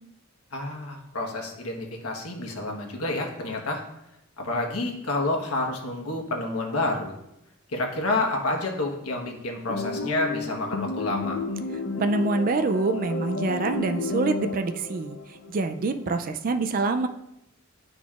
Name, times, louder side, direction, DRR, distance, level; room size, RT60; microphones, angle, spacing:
voice 1, 0.5-3.8 4.4-7.1 7.7-11.4, left 2 dB, 85° left, 1 dB, 1.1 m, -29 dB
sound 1, 9.7-16.1, left 3 dB, 65° left, 0.6 m, -32 dB
voice 2, 12.0-15.2 15.5-17.1, right 3 dB, 40° right, 8 dB, 0.3 m, -25 dB
10.5 x 3.9 x 2.4 m, 0.86 s
head